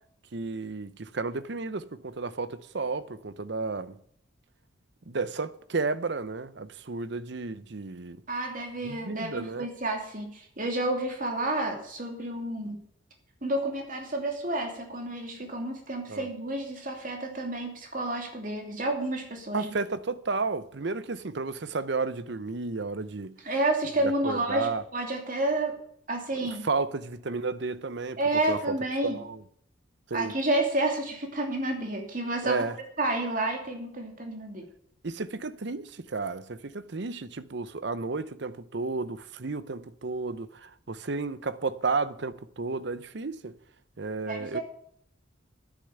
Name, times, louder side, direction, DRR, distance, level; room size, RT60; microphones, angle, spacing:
voice 1, 0.3-4.0 5.1-8.2 8.8-9.7 16.1-16.3 19.5-23.3 24.2-24.8 26.4-28.2 28.5-28.7 29.0-29.4 30.1-30.3 32.4-32.7 35.0-43.5 44.0-44.6, right 3 dB, 60° right, 0.7 m, -32 dB
voice 2, 8.3-12.8 13.4-19.7 23.4-25.8 26.1-26.6 28.2-29.2 30.1-32.6 33.0-34.6 44.3-44.6, right 2 dB, 45° right, 2.8 m, -30 dB
10.0 x 9.9 x 7.0 m
head